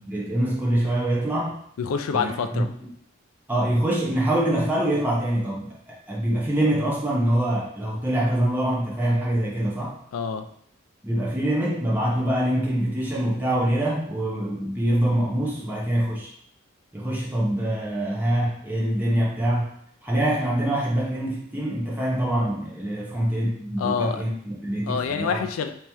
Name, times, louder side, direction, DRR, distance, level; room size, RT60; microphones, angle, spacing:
voice 1, 0.0-1.6 2.1-2.9 3.5-10.0 11.0-16.3 16.9-19.7 20.0-25.4, right 1 dB, 10° right, -5 dB, 0.7 m, -24 dB
voice 2, 1.8-2.7 10.1-10.5 23.8-24.2 24.9-25.7, left 6 dB, 75° left, 8 dB, 0.3 m, -26 dB
3.0 x 2.9 x 3.4 m, 0.67 s
head